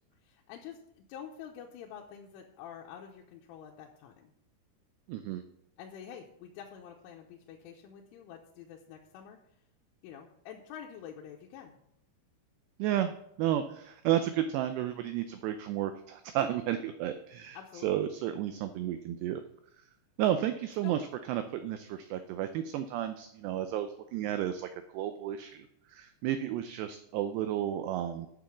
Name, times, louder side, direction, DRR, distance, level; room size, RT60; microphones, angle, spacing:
voice 1, 0.2-4.3 5.8-9.4 10.0-11.8 17.5-18.1 20.8-21.0, left 8 dB, 85° left, 0 dB, 3.3 m, -47 dB
voice 2, 5.1-5.4 12.8-19.4 20.2-28.3, right 11 dB, 90° right, 9 dB, 2.4 m, -32 dB
9.6 x 6.2 x 7.2 m, 0.75 s
omnidirectional pair, 5.6 m